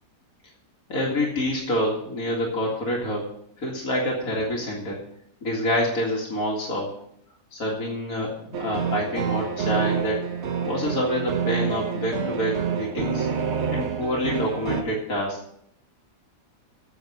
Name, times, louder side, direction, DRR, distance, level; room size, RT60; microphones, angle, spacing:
voice 1, 0.9-3.3 3.6-5.0 5.4-6.9 7.5-10.2 10.6-13.3 13.7-15.4, equal, 60° left, -3 dB, 2.6 m, -27 dB
sound 1, 8.5-14.8, right 6 dB, 50° right, 1.1 m, -27 dB
8.6 x 8.1 x 7.5 m, 0.71 s
omnidirectional pair, 1.7 m